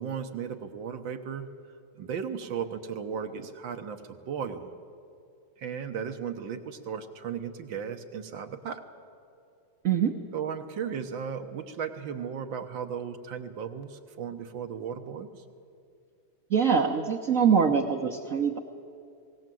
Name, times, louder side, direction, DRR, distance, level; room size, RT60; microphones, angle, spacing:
voice 1, 0.0-1.5 2.0-4.7 5.6-8.8 10.3-15.3, right 7 dB, 70° right, 7 dB, 1.7 m, -35 dB
voice 2, 16.5-18.6, right 7 dB, 50° right, 3 dB, 1.1 m, -24 dB
19.5 x 18.0 x 7.6 m, 2.5 s
omnidirectional pair, 2.3 m